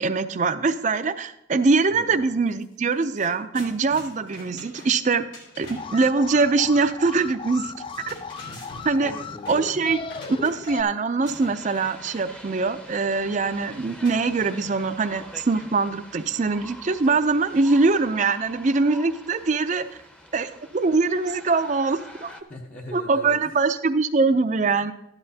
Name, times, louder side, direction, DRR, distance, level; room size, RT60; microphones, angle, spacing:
voice 1, 0.0-5.3 5.6-7.7 8.1-8.2 8.9-9.1 9.5-19.8 20.3-22.3 22.9-24.9, right 4 dB, 40° right, 10 dB, 0.5 m, -23 dB
voice 2, 1.9-2.2 8.5-9.6 22.5-23.6, left 1 dB, 45° left, -1 dB, 1.0 m, -41 dB
sound 1, 2.5-2.6 2.9-6.0 7.7-10.9 11.3-12.3 14.0-14.9, left 1 dB, 80° left, 3.3 m, -45 dB
Alarm, 5.7-10.8, left 5 dB, 25° left, 0.3 m, -37 dB
sound 2, 11.2-22.4, equal, 5° left, 0.7 m, -45 dB
13.0 x 10.5 x 2.8 m, 0.83 s
head